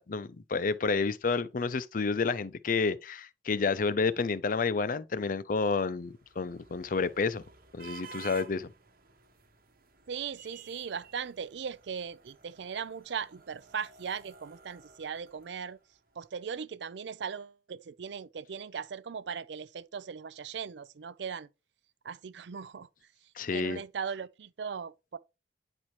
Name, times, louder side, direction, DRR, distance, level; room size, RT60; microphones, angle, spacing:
voice 1, 0.0-7.4 7.7-8.7 23.4-23.8, left 4 dB, 50° left, 0.5 m, -30 dB
sound 1, 5.7-16.0, right 6 dB, 55° right, 1.1 m, -53 dB
voice 2, 10.1-15.8 16.2-21.5 22.0-22.9 23.5-25.2, right 6 dB, 70° right, 0.5 m, -38 dB
9.7 x 4.3 x 3.1 m
head